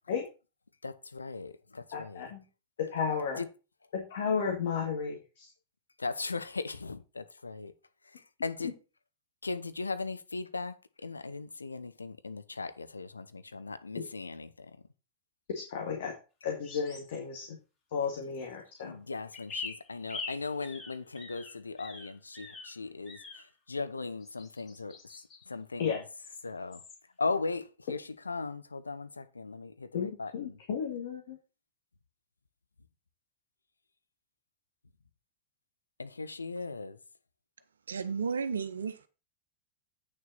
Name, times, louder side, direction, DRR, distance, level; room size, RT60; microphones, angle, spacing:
voice 1, 0.8-2.2 3.4-3.5 6.0-7.7 8.0-8.7 9.4-14.8 18.8-26.0 26.4-26.8 27.2-30.6 36.0-37.0, left 3 dB, 80° left, 0.7 m, -38 dB
voice 2, 1.9-2.4 2.8-3.4 3.9-5.5 15.5-16.1 16.4-17.6 17.9-19.0 25.8-26.0 29.9-31.4, left 6 dB, 55° left, 1.9 m, -33 dB
sound 1, 16.6-17.2 19.3-22.8 23.1-23.5 24.2-25.5 26.2-26.4 26.7-27.0, left 4 dB, 30° left, 3.1 m, -44 dB
voice 3, 37.9-39.1, right 5 dB, 70° right, 0.8 m, -33 dB
8.7 x 6.6 x 4.1 m
figure-of-eight pair, 90°, 0 cm